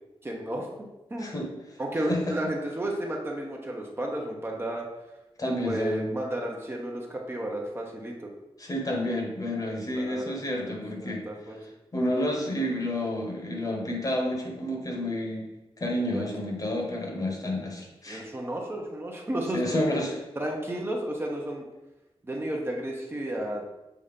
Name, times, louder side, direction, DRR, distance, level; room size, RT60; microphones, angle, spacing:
voice 1, 0.2-0.7 1.1-1.3 1.8-4.9 5.6-8.3 9.9-10.3 10.6-11.6 16.1-16.7 18.1-19.9 20.4-21.7 22.2-23.6, right 1 dB, 25° right, -1 dB, 0.9 m, -32 dB
voice 2, 5.4-6.1 8.6-11.2 11.9-15.5 15.8-18.2 19.5-20.2, left 1 dB, 35° left, 0 dB, 1.2 m, -30 dB
7.0 x 2.8 x 5.0 m, 0.97 s
wide cardioid pair, 145°, 10 cm